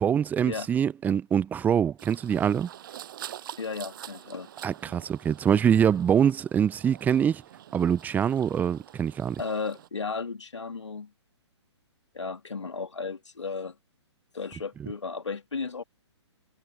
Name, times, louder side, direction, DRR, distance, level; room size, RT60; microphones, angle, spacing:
voice 1, 0.0-2.7 4.6-7.4 7.7-9.4, right 8 dB, 10° right, 0.8 m, -24 dB
sound 1, 2.0-9.9, right 11 dB, 45° right, 7.8 m, -46 dB
voice 2, 3.6-4.5 9.4-11.1 12.1-13.7 14.3-15.8, left 4 dB, 75° left, 2.5 m, -34 dB
figure-of-eight pair, 130°, 15 cm